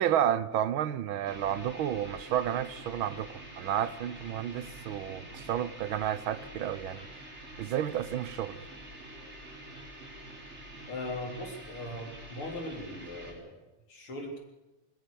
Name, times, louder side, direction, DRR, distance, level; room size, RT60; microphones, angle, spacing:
voice 1, 0.0-7.2 7.6-8.7, right 10 dB, 75° right, 1.6 m, -31 dB
sound 1, 1.3-13.3, right 1 dB, 30° right, 5.0 m, -46 dB
voice 2, 10.9-13.6 13.9-14.4, left 1 dB, 80° left, 4.6 m, -39 dB
20.5 x 20.5 x 7.0 m
omnidirectional pair, 2.3 m